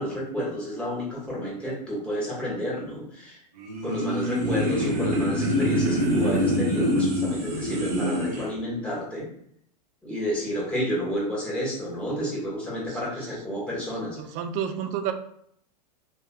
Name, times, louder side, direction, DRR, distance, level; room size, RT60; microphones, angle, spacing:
voice 1, 0.0-3.4 3.8-9.3 10.0-14.2, equal, 5° left, -5 dB, 1.4 m, -30 dB
sound 1, 3.6-8.5, equal, 65° right, 0.8 m, -25 dB
voice 2, 14.2-15.1, right 9 dB, 35° right, 7 dB, 0.4 m, -29 dB
3.1 x 2.8 x 2.2 m, 0.69 s
figure-of-eight pair, 90°, 21 cm